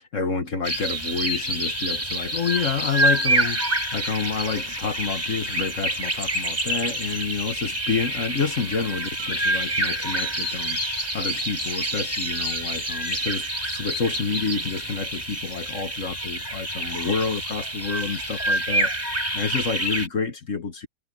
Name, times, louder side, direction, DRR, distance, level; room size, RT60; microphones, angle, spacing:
voice 1, 0.0-20.9, left 5 dB, 50° left, 1.7 m, -29 dB
sound 1, 0.6-20.1, right 1 dB, 25° right, 6.1 m, -27 dB
omnidirectional pair, 1.8 m